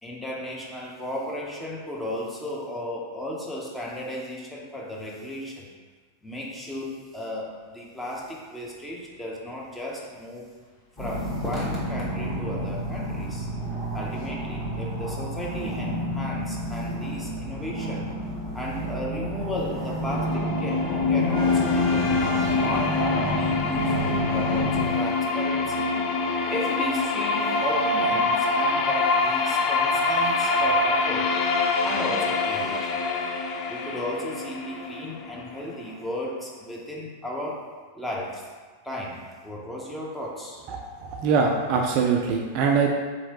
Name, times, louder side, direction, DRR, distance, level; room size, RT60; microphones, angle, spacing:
voice 1, 0.0-5.7 6.2-10.5 11.0-13.5 13.9-18.1 18.5-22.1 22.6-26.0 26.5-31.4 31.8-32.9 33.7-37.7 37.9-38.4 38.8-40.6, left 1 dB, 5° left, -4 dB, 0.7 m, -34 dB
sound 1, 8.6-8.8 9.3-9.4 9.6-9.8 10.6-10.7 11.1-11.3 11.6-11.7 12.0-14.3 14.5-15.2 15.5-24.6, left 1 dB, 60° left, 0.9 m, -41 dB
sound 2, 11.0-24.9, right 1 dB, 20° left, 1.3 m, -30 dB
sound 3, 19.9-35.9, left 3 dB, 40° left, 0.3 m, -25 dB
voice 2, 40.7-42.9, right 5 dB, 45° right, 1 dB, 0.3 m, -23 dB
3.8 x 3.0 x 2.9 m, 1.4 s
figure-of-eight pair, 90°, 0 cm